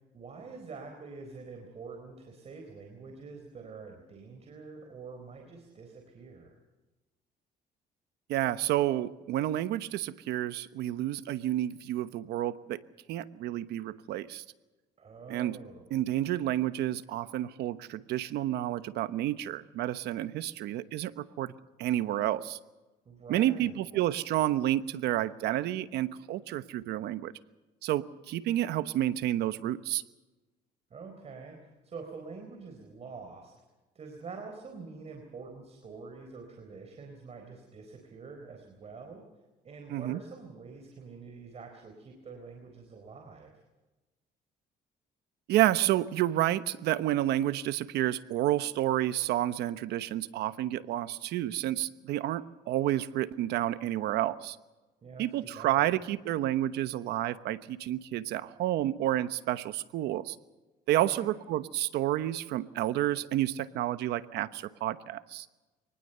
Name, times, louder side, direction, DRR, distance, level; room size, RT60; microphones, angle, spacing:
voice 1, 0.1-6.6 15.0-15.8 23.1-23.8 30.9-33.5 33.9-39.2 39.6-43.5 55.0-55.3 55.5-55.9 60.9-61.3, right 4 dB, 40° right, 3 dB, 4.2 m, -46 dB
voice 2, 8.3-12.8 13.1-14.4 15.3-15.6 15.9-21.5 21.8-22.6 23.3-27.3 27.8-30.0 39.9-40.2 45.5-54.6 55.2-60.4 60.9-65.5, right 13 dB, 80° right, 13 dB, 1.0 m, -30 dB
24.5 x 19.5 x 6.8 m, 1.1 s
cardioid pair, 110°, 17 cm